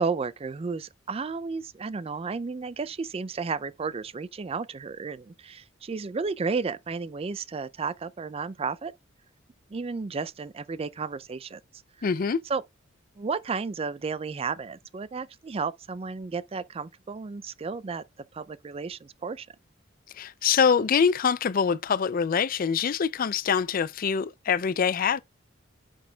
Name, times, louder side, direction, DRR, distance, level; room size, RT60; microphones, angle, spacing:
voice 1, 0.0-8.9 9.7-11.6 12.0-12.1 12.5-12.6 13.2-18.0 18.3-19.5, right 4 dB, 30° right, 0.4 m, -32 dB
voice 2, 12.0-12.4 20.2-25.2, left 6 dB, 45° left, 0.4 m, -24 dB
9.8 x 6.2 x 2.3 m
head